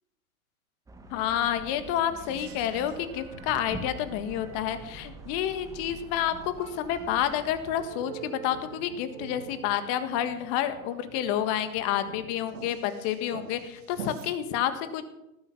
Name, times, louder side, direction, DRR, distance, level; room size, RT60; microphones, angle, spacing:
sound 1, 0.9-7.8, right 1 dB, 10° right, 1.8 m, -45 dB
voice 1, 1.1-15.0, left 10 dB, 35° left, 10 dB, 1.8 m, -29 dB
sound 2, 2.2-14.3, right 6 dB, 45° right, 2.7 m, -47 dB
18.5 x 8.4 x 7.2 m, 0.89 s
figure-of-eight pair, 115°, 43 cm